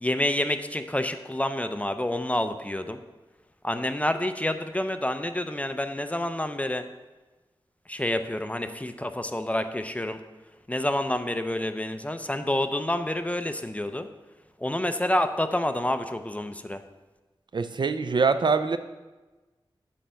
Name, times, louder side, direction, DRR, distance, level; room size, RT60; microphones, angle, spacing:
voice 1, 0.0-3.0 3.6-6.8 7.9-10.2 10.7-14.1 14.6-16.8, left 1 dB, 15° left, 9 dB, 0.5 m, -28 dB
voice 2, 17.5-18.8, right 4 dB, 55° right, 11 dB, 0.4 m, -24 dB
8.4 x 3.4 x 6.3 m, 1.2 s
wide cardioid pair, 60°, 9 cm